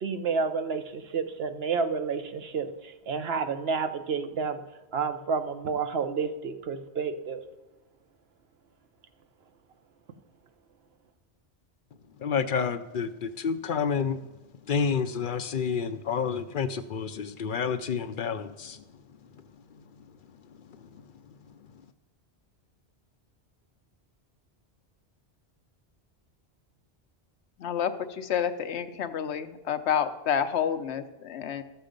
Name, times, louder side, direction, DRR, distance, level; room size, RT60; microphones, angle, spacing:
voice 1, 0.0-4.6 4.9-7.4, right 5 dB, 70° right, 9 dB, 1.0 m, -30 dB
voice 2, 12.2-14.2 14.7-18.8 19.3-19.4 19.7-20.1 20.6-21.6, left 6 dB, 60° left, 11 dB, 0.6 m, -30 dB
voice 3, 27.6-31.6, left 8 dB, 80° left, 10 dB, 1.0 m, -29 dB
12.5 x 6.9 x 5.1 m, 1.1 s
omnidirectional pair, 1.1 m